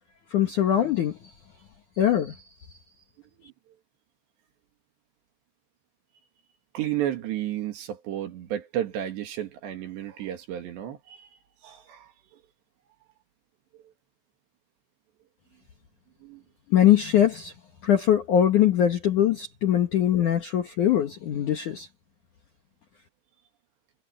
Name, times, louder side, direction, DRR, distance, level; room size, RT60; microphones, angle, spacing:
voice 1, 0.3-1.3 2.0-2.4 16.7-17.5 17.8-21.9, left 10 dB, 70° left, 1.9 m, -22 dB
voice 2, 6.7-11.3 11.6-12.1 16.2-16.4, right 11 dB, 65° right, 4.0 m, -32 dB
omnidirectional pair, 5.7 m